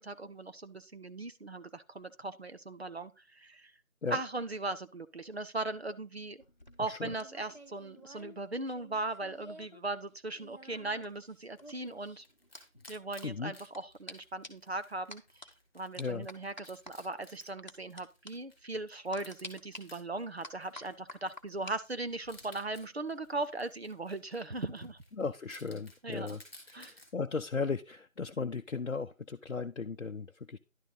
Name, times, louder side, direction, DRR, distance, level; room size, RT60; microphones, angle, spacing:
voice 1, 0.0-3.7 4.1-6.4 6.8-12.2 12.9-25.0 26.0-26.4 26.7-26.9, right 2 dB, 50° right, 0.8 m, -39 dB
sound 1, 6.4-9.8 10.1-13.8 14.1-14.2 14.4-14.7 15.1-15.5 16.0-16.9 17.7-18.0 18.3-18.4 19.1-19.8 20.4-21.8 22.1-22.4, left 1 dB, 35° left, 1.1 m, -50 dB
Wild animals, 11.1-27.1, left 1 dB, 10° left, 3.0 m, -59 dB
voice 2, 25.1-26.4 26.7-30.6, left 4 dB, 65° left, 0.6 m, -36 dB
11.0 x 6.3 x 3.8 m
figure-of-eight pair, 175°, 41 cm